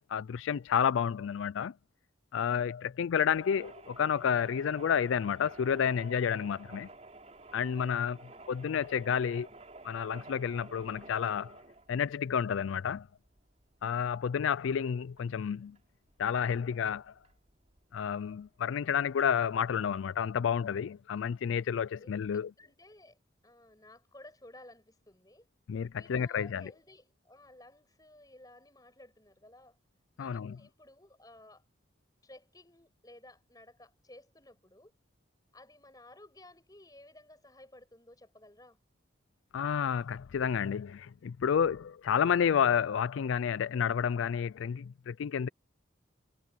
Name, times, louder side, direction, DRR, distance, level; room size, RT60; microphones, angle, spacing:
voice 1, 0.0-1.7 2.3-6.9 7.5-8.2 8.5-9.5 9.8-11.5 11.9-13.1 13.8-15.8 16.2-17.1 17.9-22.5 25.7-26.7 30.2-30.6 39.5-45.5, left 7 dB, 80° left, 0.4 m, -30 dB
Washing Machine Washing cycle (contact mic), 3.3-20.0, right 2 dB, 35° right, 4.8 m, -53 dB
voice 2, 8.2-8.6 21.9-23.2 23.4-25.5 25.9-29.8 30.2-31.6 32.2-34.9 35.5-38.8, left 1 dB, 20° left, 5.7 m, -56 dB
head